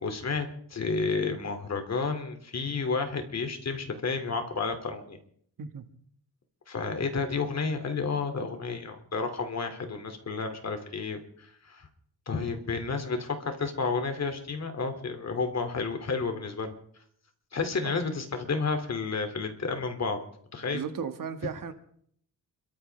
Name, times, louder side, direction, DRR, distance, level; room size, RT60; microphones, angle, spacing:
voice 1, 0.0-5.2 6.7-11.9 12.3-16.7 17.5-20.2 20.5-20.8, left 4 dB, 45° left, 6 dB, 2.5 m, -31 dB
voice 2, 20.7-21.7, right 6 dB, 60° right, 8 dB, 1.7 m, -35 dB
29.0 x 14.0 x 3.3 m, 0.64 s
cardioid pair, 100°, 37 cm